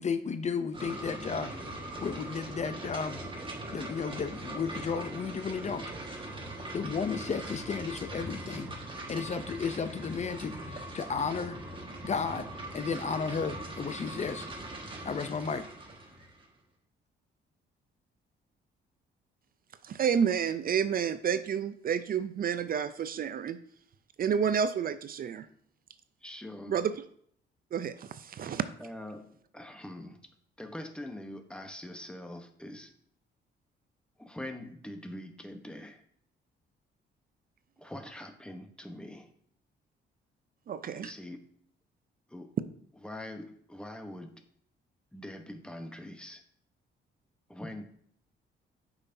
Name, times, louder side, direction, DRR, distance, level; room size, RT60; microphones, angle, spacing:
voice 1, 0.0-3.2 3.7-5.9 6.1-6.4 6.7-8.7 9.1-11.6 12.0-12.5 12.7-14.5 15.0-15.6, left 5 dB, 35° left, 10 dB, 0.5 m, -33 dB
sound 1, 0.7-16.4, right 1 dB, 25° right, 1.6 m, -41 dB
voice 2, 19.8-23.6 24.2-25.5 26.7-26.9 27.7-28.6 40.7-41.1, right 7 dB, 50° right, 13 dB, 0.4 m, -30 dB
voice 3, 26.2-26.8 28.8-30.2 30.6-32.9 34.2-36.0 37.8-39.3 41.0-41.4 42.3-42.5 43.0-44.3 45.1-46.4 47.5-47.8, left 1 dB, 5° left, 6 dB, 1.0 m, -43 dB
8.0 x 5.7 x 2.7 m, 0.63 s
cardioid pair, 90°, 20 cm